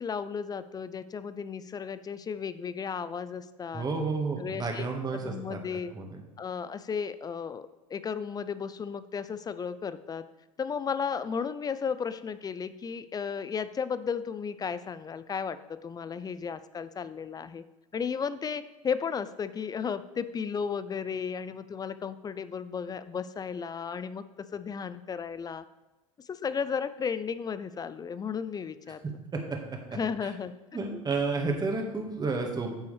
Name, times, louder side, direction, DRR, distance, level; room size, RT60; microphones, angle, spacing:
voice 1, 0.0-3.9 4.4-5.9 6.4-10.3 10.6-17.6 17.9-24.2 24.5-25.6 26.2-29.2 29.9-30.5 30.9-31.0, left 6 dB, 25° left, 14 dB, 0.5 m, -34 dB
voice 2, 3.7-5.6 5.9-6.2 29.3-29.4 30.2-30.3 30.7-32.8, right 4 dB, 25° right, 2 dB, 1.7 m, -31 dB
9.4 x 6.8 x 3.4 m, 1.1 s
hypercardioid pair, 80°, 17 cm